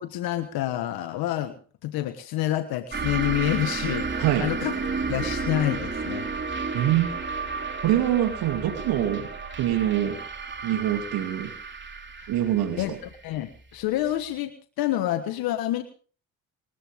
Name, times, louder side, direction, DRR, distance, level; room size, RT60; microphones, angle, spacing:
voice 1, 0.0-1.6 1.8-4.7 5.1-6.3 12.2-12.3 12.8-12.9 13.2-15.8, left 13 dB, 80° left, 9 dB, 1.5 m, -28 dB
sound 1, 2.9-14.1, right 4 dB, 30° right, 3.4 m, -32 dB
voice 2, 4.2-4.5 6.7-7.1 7.8-9.3 9.6-10.2 10.6-11.5 12.3-13.0, right 12 dB, 80° right, 5 dB, 2.9 m, -24 dB
26.5 x 15.0 x 3.7 m, 0.41 s
supercardioid pair, 65°, 36 cm